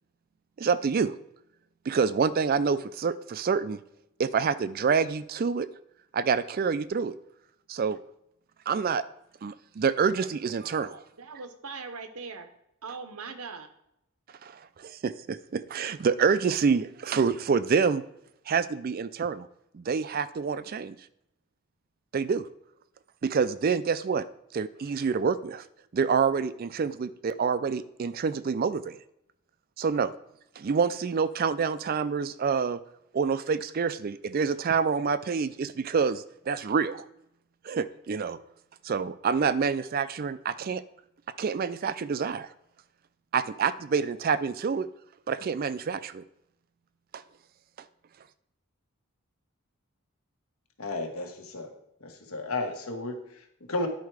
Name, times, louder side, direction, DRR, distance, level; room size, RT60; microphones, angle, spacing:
voice 1, 0.6-1.1 1.9-3.8 4.2-5.7 6.1-7.1 7.7-8.0 8.7-9.0 9.4-11.0 14.4-18.0 18.5-19.5 19.7-20.9 22.1-22.5 23.2-24.2 24.5-25.6 25.9-29.0 29.8-30.1 30.6-32.8 33.1-37.0 37.6-38.4 38.8-40.8 41.4-42.5 43.3-44.9 45.3-46.2 47.1-47.2, right 5 dB, 45° right, 15 dB, 0.3 m, -27 dB
voice 2, 11.2-12.5 12.8-13.7, right 4 dB, 85° right, 9 dB, 0.9 m, -40 dB
voice 3, 50.8-51.7 52.0-53.9, left 2 dB, 75° left, 4 dB, 1.3 m, -33 dB
10.5 x 4.5 x 4.7 m, 0.79 s
head